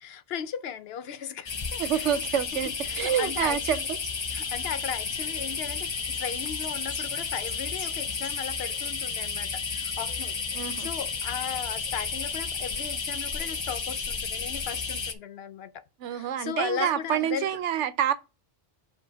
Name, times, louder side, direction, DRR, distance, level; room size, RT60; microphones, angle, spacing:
voice 1, 0.0-2.1 2.8-3.9 4.3-10.3 10.8-15.8 16.1-17.5, left 8 dB, 65° left, 0.8 m, -36 dB
sound 1, 1.5-15.1, left 5 dB, 40° left, 0.4 m, -32 dB
voice 2, 1.8-4.0 10.5-10.9 16.0-18.1, right 10 dB, 90° right, 1.0 m, -27 dB
5.2 x 3.7 x 5.5 m
omnidirectional pair, 1.2 m